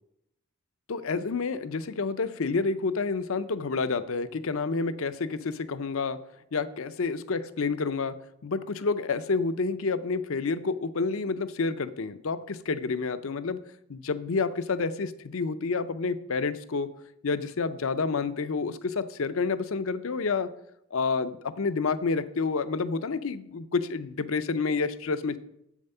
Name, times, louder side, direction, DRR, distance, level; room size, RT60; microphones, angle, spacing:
voice 1, 0.9-6.2 6.5-8.1 8.4-13.6 13.9-16.9 17.2-20.5 20.9-25.4, left 4 dB, 70° left, 13 dB, 0.6 m, -29 dB
7.9 x 7.2 x 5.5 m, 0.79 s
head